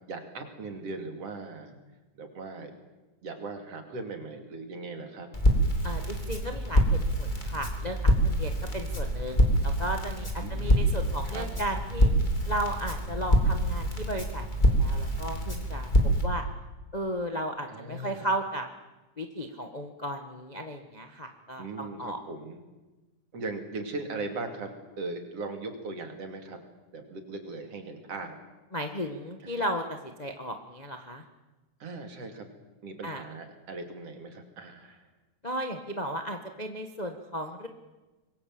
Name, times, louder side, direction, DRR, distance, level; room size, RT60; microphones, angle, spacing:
voice 1, 0.1-1.8 2.2-2.7 3.2-5.3 10.4-11.5 17.7-18.3 21.6-22.6 23.3-26.6 26.9-28.3 29.4-29.6 31.8-32.5 32.8-35.0, right 3 dB, 50° right, 5 dB, 3.5 m, -39 dB
Crackle, 5.3-16.2, equal, 15° left, 3.2 m, -26 dB
voice 2, 5.8-12.1 12.5-15.9 16.2-16.4 16.9-18.7 19.2-22.2 28.7-31.2 33.0-33.2 35.4-37.7, equal, 30° left, 4 dB, 0.7 m, -35 dB
25.5 x 22.0 x 7.8 m, 1.1 s
omnidirectional pair, 3.5 m